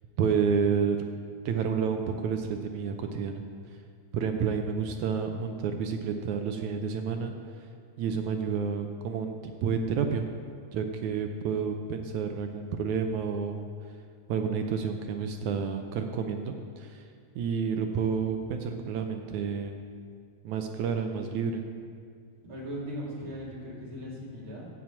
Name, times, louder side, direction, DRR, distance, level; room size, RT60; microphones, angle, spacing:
voice 1, 0.2-1.0 1.5-3.4 4.1-7.3 8.0-10.2 10.7-13.7 14.3-17.1 17.4-19.8 20.4-21.6, right 6 dB, 75° right, 5 dB, 1.8 m, -30 dB
voice 2, 22.4-24.7, equal, 40° right, -6 dB, 3.6 m, -39 dB
13.5 x 6.1 x 8.4 m, 2.2 s
omnidirectional pair, 4.0 m